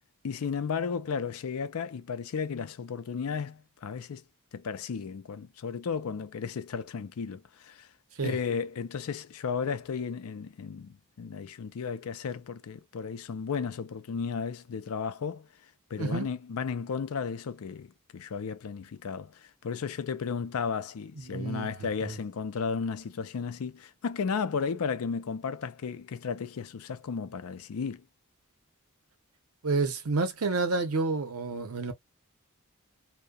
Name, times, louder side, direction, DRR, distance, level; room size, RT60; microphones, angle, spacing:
voice 1, 0.2-4.2 4.5-7.9 8.2-15.5 15.9-28.0, left 6 dB, 75° left, 0.4 m, -34 dB
voice 2, 21.2-21.7 22.0-22.2 29.6-31.9, right 3 dB, 75° right, 0.7 m, -29 dB
2.7 x 2.1 x 2.2 m
head